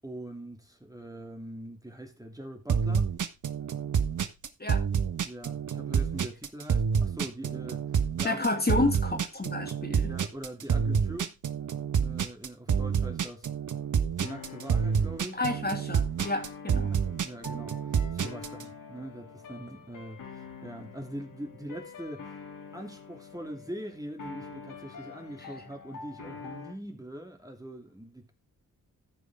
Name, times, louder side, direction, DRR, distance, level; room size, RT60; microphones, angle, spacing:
voice 1, 0.0-3.1 5.2-8.4 10.1-11.4 12.0-13.5 14.2-15.4 16.9-22.4 22.7-28.3, right 1 dB, 10° right, 2.6 m, -42 dB
sound 1, 2.7-18.6, right 6 dB, 55° right, 1.2 m, -28 dB
voice 2, 8.2-10.1 15.3-17.0, left 2 dB, 25° left, 2.7 m, -30 dB
sound 2, 14.2-26.7, left 5 dB, 60° left, 2.7 m, -46 dB
14.0 x 5.3 x 3.5 m
supercardioid pair, 45°, 36 cm